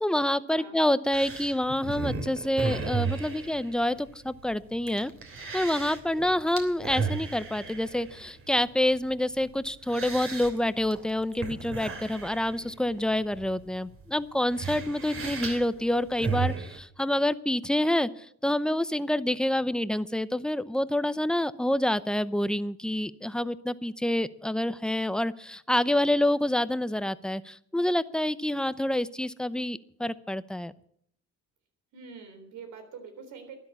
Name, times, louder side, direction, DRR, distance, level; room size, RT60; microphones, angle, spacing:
voice 1, 0.0-5.1 5.5-30.7, left 1 dB, 5° left, 14 dB, 0.7 m, -27 dB
sound 1, 1.1-16.8, right 5 dB, 45° right, 3.1 m, -36 dB
voice 2, 31.9-33.6, right 5 dB, 85° right, 6 dB, 3.7 m, -44 dB
12.5 x 10.5 x 8.3 m, 0.67 s
cardioid pair, 90°, 30 cm